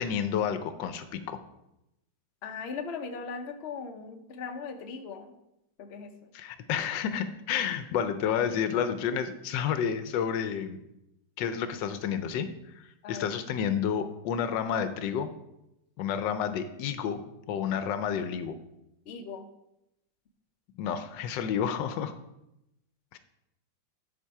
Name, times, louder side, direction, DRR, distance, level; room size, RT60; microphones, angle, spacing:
voice 1, 0.0-1.4 6.3-10.8 11.4-15.3 16.0-17.2 17.5-18.6 20.8-22.1 23.1-23.2, left 8 dB, 75° left, 11 dB, 1.3 m, -30 dB
voice 2, 2.4-5.3 5.8-6.2 13.0-13.3 19.1-19.5, left 5 dB, 55° left, 5 dB, 0.7 m, -39 dB
10.0 x 4.3 x 4.7 m, 0.87 s
omnidirectional pair, 2.0 m